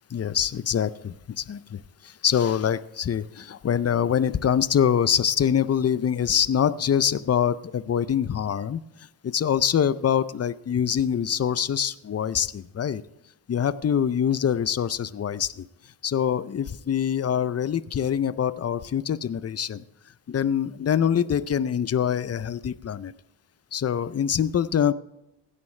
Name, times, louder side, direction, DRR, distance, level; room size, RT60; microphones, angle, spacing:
voice 1, 0.1-8.8 9.2-13.0 13.5-15.6 16.0-19.8 20.3-23.1 23.7-24.9, left 8 dB, 35° left, 17 dB, 0.4 m, -24 dB
16.0 x 11.0 x 3.2 m, 0.91 s
wide cardioid pair, 95°, 45 cm